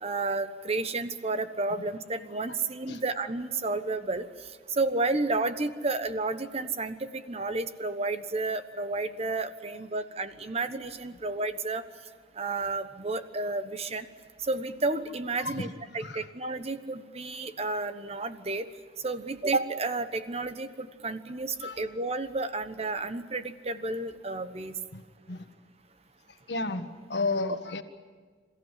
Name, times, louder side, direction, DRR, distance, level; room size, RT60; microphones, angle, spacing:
voice 1, 0.0-4.2 4.8-11.8 12.4-14.0 14.5-15.7 15.9-18.6 19.0-24.8 27.5-27.6, right 3 dB, 35° right, 11 dB, 1.1 m, -31 dB
voice 2, 26.5-27.8, left 3 dB, 65° left, 6 dB, 1.6 m, -32 dB
28.0 x 15.0 x 9.9 m, 1.5 s
head